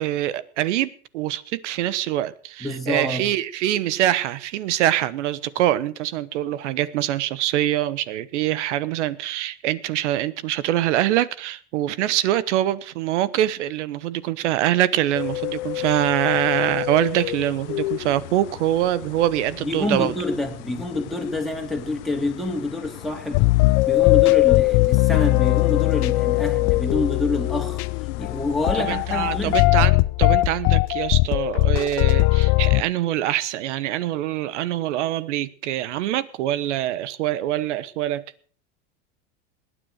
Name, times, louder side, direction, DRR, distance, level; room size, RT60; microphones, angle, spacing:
voice 1, 0.0-20.1 28.8-38.3, right 13 dB, 85° right, 1.2 m, -24 dB
voice 2, 2.6-3.3 19.6-23.4 23.8-27.8 28.2-29.7, left 2 dB, ahead, 2.9 m, -27 dB
sound 1, 15.1-29.5, left 20 dB, 85° left, 0.7 m, -26 dB
sound 2, 23.3-32.8, left 22 dB, 50° left, 0.8 m, -20 dB
20.0 x 9.6 x 6.4 m
supercardioid pair, 125°, 35 cm